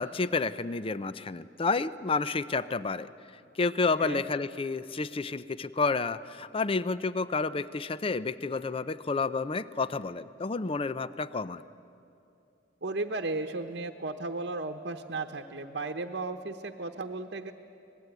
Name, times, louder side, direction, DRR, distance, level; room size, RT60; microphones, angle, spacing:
voice 1, 0.0-3.1 3.6-11.6, left 4 dB, 30° left, 15 dB, 0.5 m, -30 dB
voice 2, 12.8-17.5, right 2 dB, 60° right, 4 dB, 1.0 m, -35 dB
25.5 x 20.0 x 9.3 m, 2.7 s
head